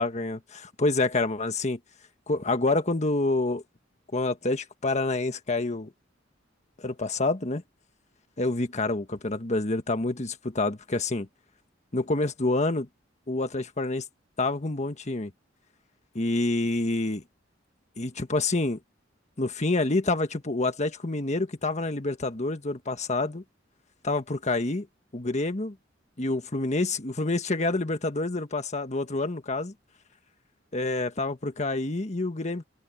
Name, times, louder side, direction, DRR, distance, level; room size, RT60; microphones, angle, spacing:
voice 1, 0.0-1.8 2.3-3.6 4.1-5.9 6.8-7.6 8.4-11.3 11.9-12.9 13.3-14.0 14.4-15.3 16.1-17.2 18.0-18.8 19.4-23.4 24.0-24.9 25.1-25.8 26.2-29.7 30.7-32.6, left 2 dB, 40° left, 1.5 m, -27 dB
open air
head